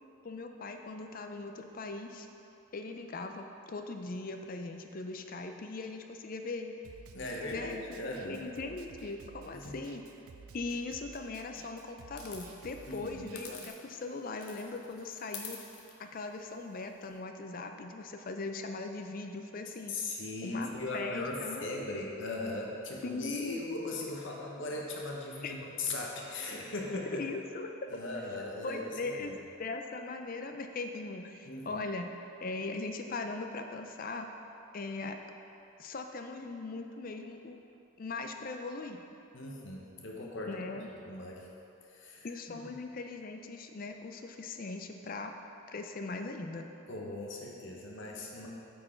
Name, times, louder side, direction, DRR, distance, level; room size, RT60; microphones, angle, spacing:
voice 1, 0.2-2.3 2.7-6.7 7.5-10.0 10.5-15.6 16.0-19.9 20.4-21.9 23.0-23.6 25.4-25.5 27.1-27.7 28.6-29.3 29.6-32.1 32.4-34.3 34.7-35.2 35.8-37.6 38.0-39.0 40.5-40.9 42.2-45.3 45.7-46.7, left 3 dB, 40° left, 5 dB, 0.4 m, -40 dB
Snare drum, 6.8-13.7, right 5 dB, 80° right, 0.4 m, -54 dB
voice 2, 7.1-8.4 9.5-9.8 12.9-13.3 19.9-27.2 27.9-29.4 31.4-31.8 39.3-40.8 41.0-41.5 41.9-42.7 46.9-48.5, left 2 dB, 55° left, -2 dB, 0.9 m, -39 dB
sound 1, 12.2-14.1 14.4-17.2, left 5 dB, 90° left, 1.0 m, -48 dB
8.5 x 4.7 x 4.4 m, 2.8 s
head